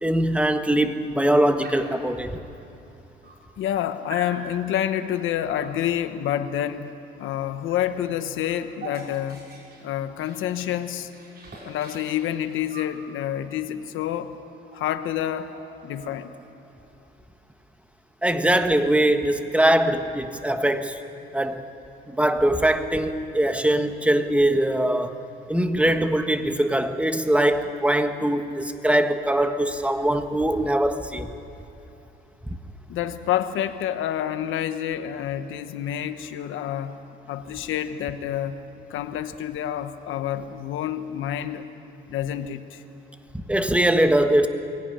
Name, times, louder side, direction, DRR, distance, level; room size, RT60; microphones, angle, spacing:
voice 1, 0.0-2.4 18.2-21.0 21.3-21.7 22.1-25.1 25.5-31.3 32.5-32.6 43.3-44.5, right 1 dB, 5° right, 8 dB, 1.5 m, -22 dB
Dog, 1.6-2.0 2.9-3.0 3.2-3.8 4.1-4.4 5.6-5.9 7.7-7.8 8.1-10.8 11.1-13.0 14.3-14.4 14.7-14.9 15.2-16.4, right 2 dB, 55° right, 6.1 m, -43 dB
voice 2, 3.6-6.9 7.2-9.4 9.8-11.1 11.6-14.4 14.7-15.5 15.8-16.3 32.9-37.0 37.3-38.6 38.9-41.7 42.1-42.8, left 11 dB, 85° left, 10 dB, 1.2 m, -28 dB
22.0 x 17.0 x 10.0 m, 2.9 s
cardioid pair, 90°, 20 cm